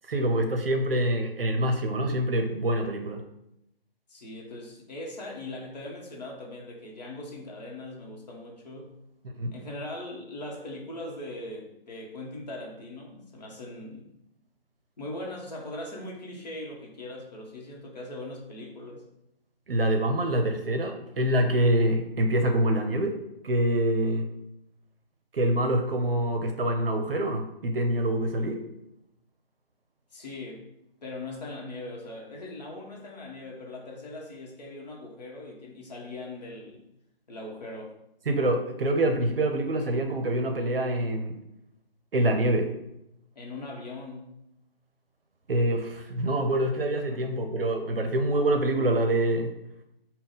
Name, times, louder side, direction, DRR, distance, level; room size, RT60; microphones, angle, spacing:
voice 1, 0.1-3.2 9.4-9.5 19.7-23.2 23.4-24.3 25.3-28.6 38.3-41.4 42.1-42.7 45.5-49.5, right 1 dB, 65° right, 5 dB, 0.6 m, -25 dB
voice 2, 4.1-8.9 9.5-14.1 15.0-19.0 30.1-30.7 31.0-36.8 37.3-37.9 43.3-44.3 47.1-47.3, left 2 dB, 40° left, -1 dB, 1.0 m, -40 dB
3.6 x 2.2 x 3.8 m, 0.83 s
figure-of-eight pair, 155°, 31 cm